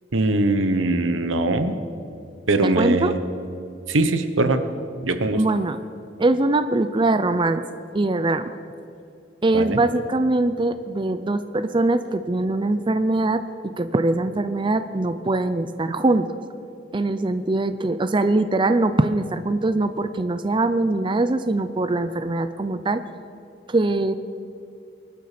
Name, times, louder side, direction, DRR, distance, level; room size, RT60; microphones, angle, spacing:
voice 1, 0.1-1.7 2.5-3.2 3.9-4.6 5.0-5.4 9.5-9.8, right 2 dB, 90° right, 9 dB, 1.1 m, -21 dB
voice 2, 2.6-3.1 5.4-5.8 6.2-7.7 7.9-8.6 9.4-16.4 16.9-23.0 23.7-24.1, right 2 dB, 25° right, 11 dB, 0.5 m, -22 dB
20.5 x 12.0 x 5.1 m, 2.6 s
head